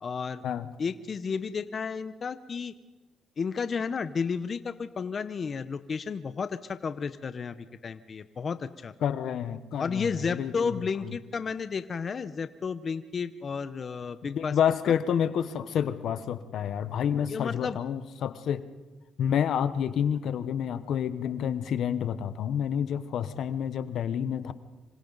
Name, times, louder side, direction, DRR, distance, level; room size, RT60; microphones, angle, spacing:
voice 1, 0.0-0.4 0.8-2.7 3.4-7.6 7.8-8.9 9.8-14.5 17.3-17.8, left 5 dB, 45° left, 12 dB, 0.8 m, -32 dB
voice 2, 9.0-11.1 14.2-18.7 19.2-24.5, left 8 dB, 70° left, 13 dB, 1.0 m, -29 dB
26.0 x 26.0 x 4.0 m, 1.2 s
cardioid pair, 90°, 0 cm